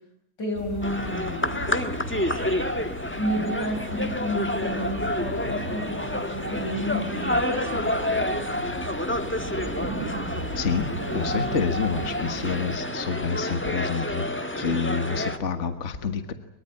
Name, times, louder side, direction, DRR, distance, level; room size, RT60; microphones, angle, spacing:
voice 1, 0.4-1.7 3.1-7.9, equal, 85° left, 4 dB, 6.5 m, -31 dB
sound 1, 0.5-12.8, right 1 dB, 40° right, 3.3 m, -37 dB
sound 2, 0.8-15.4, left 1 dB, 5° left, 1.4 m, -29 dB
voice 2, 10.5-14.3 14.6-16.3, left 5 dB, 45° left, 9 dB, 1.8 m, -28 dB
23.5 x 23.0 x 9.1 m, 0.77 s
omnidirectional pair, 1.9 m